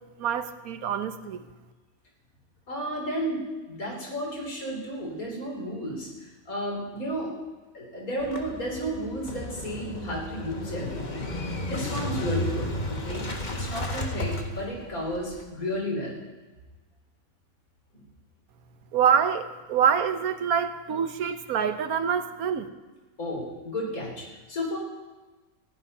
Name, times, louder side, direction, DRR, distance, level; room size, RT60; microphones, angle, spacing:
voice 1, 0.2-1.4 18.9-22.7, right 7 dB, 85° right, 10 dB, 1.3 m, -25 dB
voice 2, 2.7-7.3 7.7-13.2 13.5-16.1 17.9-18.0 23.2-24.8, equal, 80° left, -1 dB, 4.0 m, -33 dB
Motorcycle / Engine starting, 8.2-15.4, left 1 dB, 35° left, 1.4 m, -33 dB
15.5 x 11.0 x 5.5 m, 1.2 s
omnidirectional pair, 1.5 m